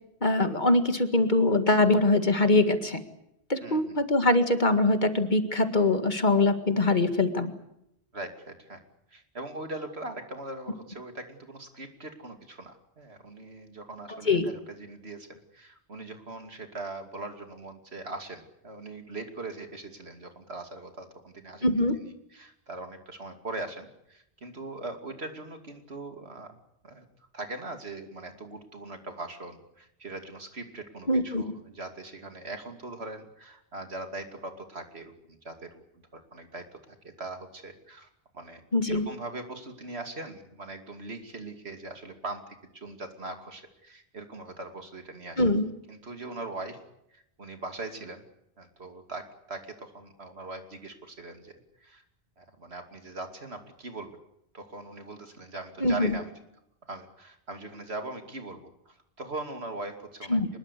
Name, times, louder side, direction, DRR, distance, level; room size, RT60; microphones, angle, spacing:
voice 1, 0.2-3.0 3.5-7.5 14.1-14.5 21.6-22.0 31.1-31.4 38.7-39.1 45.4-45.7 55.8-56.2 60.3-60.5, left 2 dB, 45° left, 8 dB, 2.1 m, -23 dB
voice 2, 3.6-4.0 8.1-8.8 9.1-21.7 22.0-26.6 26.8-27.1 27.3-35.8 36.1-38.1 38.3-38.6 38.9-45.4 45.9-46.8 47.1-48.2 48.6-52.0 52.4-54.2 54.5-56.3 56.9-60.6, right 2 dB, 75° right, 6 dB, 2.9 m, -41 dB
24.5 x 21.0 x 8.3 m, 0.80 s
omnidirectional pair, 1.1 m